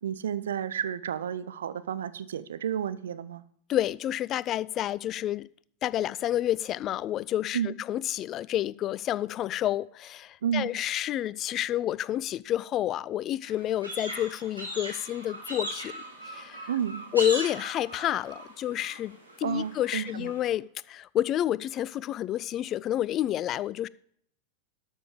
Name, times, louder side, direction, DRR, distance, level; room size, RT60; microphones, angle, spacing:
voice 1, 0.0-3.4 7.5-7.7 10.4-10.7 16.7-17.0 19.4-20.3, right 9 dB, 65° right, 0.7 m, -31 dB
voice 2, 3.7-5.5 5.8-16.7 17.1-19.1 19.4-23.9, left 12 dB, 30° left, 0.4 m, -29 dB
sound 1, 13.4-20.5, right 1 dB, 85° right, 4.0 m, -39 dB
12.5 x 7.1 x 4.8 m
figure-of-eight pair, 90°, 0 cm